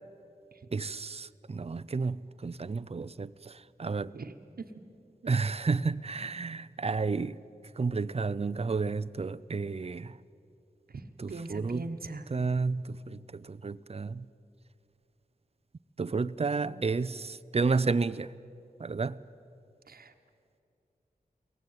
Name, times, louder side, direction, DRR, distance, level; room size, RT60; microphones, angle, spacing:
voice 1, 0.7-4.1 5.3-7.4 7.8-10.1 11.2-11.9 12.3-14.2 16.0-18.3 18.8-19.2, right 4 dB, 40° right, 0.6 m, -31 dB
voice 2, 4.1-4.7 5.2-5.3 10.9-11.0 11.3-12.2 19.9-20.1, right 3 dB, 85° right, 1.2 m, -40 dB
22.5 x 18.0 x 9.1 m
wide cardioid pair, 80°, 15 cm